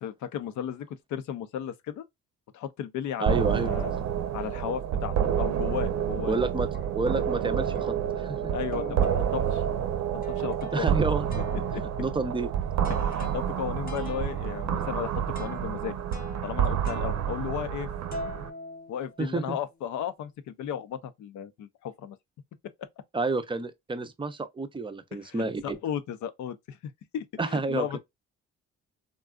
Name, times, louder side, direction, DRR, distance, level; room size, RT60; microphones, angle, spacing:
voice 1, 0.0-2.0 2.5-3.9 4.3-6.4 8.5-9.6 10.1-10.9 11.7-11.8 12.9-16.0 16.4-17.9 18.9-22.2 25.1-28.0, left 9 dB, 75° left, 0.6 m, -35 dB
voice 2, 3.2-3.7 6.3-6.7 6.9-8.4 10.7-11.4 12.0-12.5 19.2-19.6 23.1-25.8 27.4-28.0, right 3 dB, 15° right, 0.5 m, -29 dB
sound 1, 3.3-18.5, right 9 dB, 65° right, 0.7 m, -29 dB
sound 2, 5.8-6.1 6.7-6.8 7.2-8.3 8.7-11.0 11.3-17.8 18.1-19.5, left 3 dB, 30° left, 0.7 m, -45 dB
3.7 x 2.3 x 2.3 m
cardioid pair, 90°, 30 cm